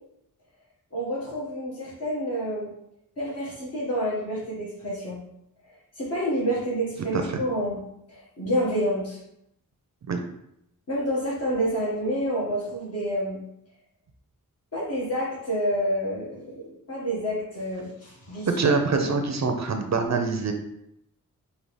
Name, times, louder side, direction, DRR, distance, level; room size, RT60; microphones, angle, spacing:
voice 1, 0.9-2.7 3.2-5.2 5.9-7.8 8.1-9.2 10.9-13.4 14.7-19.1, equal, 45° left, -5 dB, 1.6 m, -28 dB
voice 2, 18.5-20.5, right 4 dB, 50° right, 5 dB, 0.5 m, -24 dB
5.4 x 2.8 x 3.2 m, 0.79 s
wide cardioid pair, 140°, 34 cm